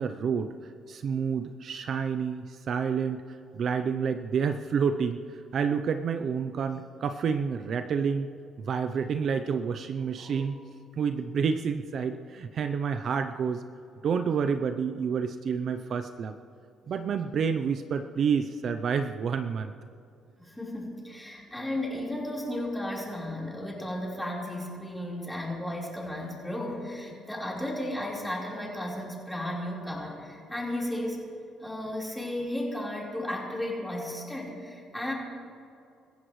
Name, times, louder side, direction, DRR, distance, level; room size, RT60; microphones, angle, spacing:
voice 1, 0.0-3.2 3.5-8.3 8.6-10.5 11.0-13.6 14.0-16.4 16.9-19.7, right 6 dB, 50° right, 8 dB, 0.6 m, -29 dB
voice 2, 20.4-31.2 31.6-35.1, left 1 dB, 5° left, -4 dB, 4.2 m, -34 dB
25.0 x 15.0 x 3.2 m, 2.6 s
cardioid pair, 115°, 0 cm